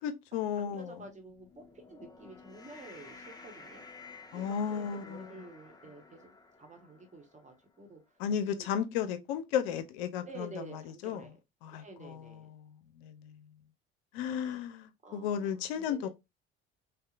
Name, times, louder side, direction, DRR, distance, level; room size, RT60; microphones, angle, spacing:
voice 1, 0.0-1.0 4.3-5.3 8.2-11.3 11.6-13.5 14.1-16.1, left 8 dB, 75° left, 0.5 m, -34 dB
voice 2, 0.5-3.8 4.3-8.2 8.5-8.7 10.2-11.4 11.7-12.5 14.3-14.6 15.0-16.1, right 2 dB, 25° right, 1.0 m, -50 dB
sound 1, 1.3-7.8, left 4 dB, 15° left, 0.5 m, -53 dB
2.8 x 2.0 x 2.4 m
hypercardioid pair, 60°, 31 cm